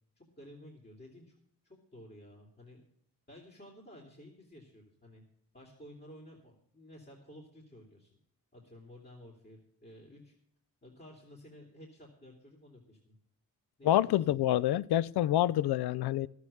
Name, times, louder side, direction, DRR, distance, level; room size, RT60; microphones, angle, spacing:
voice 1, 0.2-1.3 1.6-2.8 3.3-5.2 5.5-8.1 8.5-10.3 10.8-13.1 13.8-14.4, left 1 dB, 25° left, 3.4 m, -53 dB
voice 2, 13.8-16.3, left 13 dB, 80° left, 0.5 m, -27 dB
12.0 x 8.1 x 8.6 m
cardioid pair, 50°, 38 cm